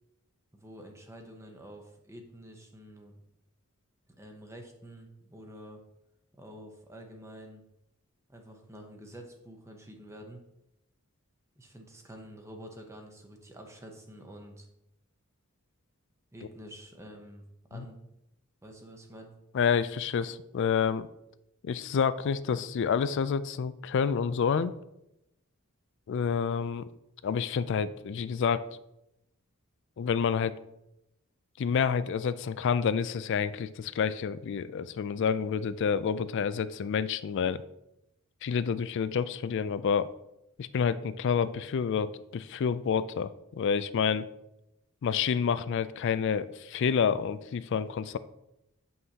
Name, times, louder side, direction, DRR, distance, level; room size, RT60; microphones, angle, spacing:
voice 1, 0.5-3.1 4.2-5.8 6.4-7.6 8.3-10.4 11.6-14.7 16.3-17.4 17.7-18.0 18.6-19.3, equal, 15° right, 3 dB, 0.8 m, -48 dB
voice 2, 19.5-21.1 21.6-24.7 26.1-26.9 27.2-28.6 30.0-30.5 31.6-37.6 38.4-40.1 40.6-44.2 45.0-48.2, left 6 dB, 55° left, 14 dB, 0.3 m, -28 dB
7.8 x 5.6 x 2.8 m, 0.85 s
head